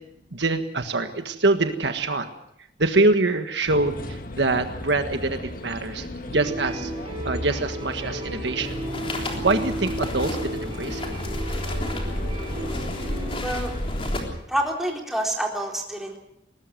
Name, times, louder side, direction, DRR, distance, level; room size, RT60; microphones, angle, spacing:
voice 1, 0.3-2.3 2.8-3.9 4.4-6.1 6.3-6.9 7.2-8.8 9.2-11.1, right 2 dB, 70° right, 7 dB, 1.6 m, -24 dB
sound 1, 3.7-14.4, left 1 dB, 50° left, 1.8 m, -35 dB
sound 2, 6.3-13.4, right 1 dB, 30° right, 5.7 m, -34 dB
sound 3, 8.6-14.2, left 1 dB, 30° left, 3.5 m, -32 dB
voice 2, 13.4-13.7 14.5-16.2, right 1 dB, ahead, 0 dB, 3.9 m, -27 dB
21.0 x 18.5 x 7.6 m, 0.77 s
head